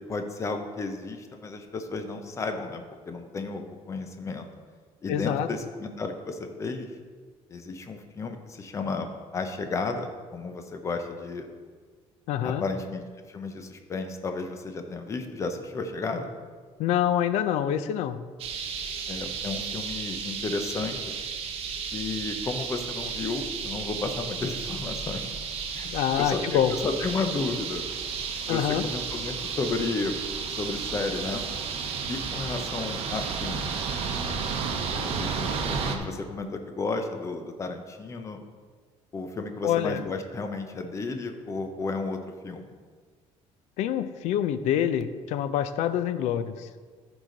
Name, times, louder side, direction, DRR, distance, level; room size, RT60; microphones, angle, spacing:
voice 1, 0.1-4.5 5.0-6.9 7.5-9.1 9.3-11.5 12.4-13.0 13.3-16.3 19.1-21.1 21.9-25.3 25.7-27.9 28.4-30.2 30.6-31.4 32.1-33.7 35.0-38.4 39.1-42.7, left 3 dB, 25° left, 6 dB, 0.8 m, -33 dB
voice 2, 5.1-5.5 12.3-12.6 16.8-18.2 25.8-26.7 28.5-28.9 39.6-40.0 43.8-46.7, left 10 dB, 80° left, 12 dB, 0.5 m, -26 dB
sound 1, 18.4-36.0, right 5 dB, 60° right, 1.0 m, -33 dB
14.0 x 4.9 x 3.9 m, 1.5 s
cardioid pair, 150°, 11 cm